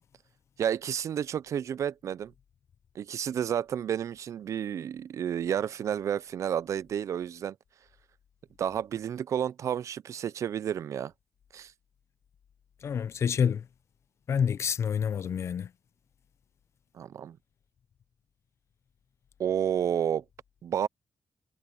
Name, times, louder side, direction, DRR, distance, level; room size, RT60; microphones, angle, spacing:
voice 1, 0.6-2.3 3.0-7.6 8.6-11.1 11.5-11.7 16.9-17.4 19.4-20.2 20.6-20.9, right 9 dB, 65° right, 0.4 m, -31 dB
voice 2, 12.8-13.6 14.3-15.7, left 7 dB, 55° left, 0.5 m, -28 dB
wide cardioid pair, 140°, 6 cm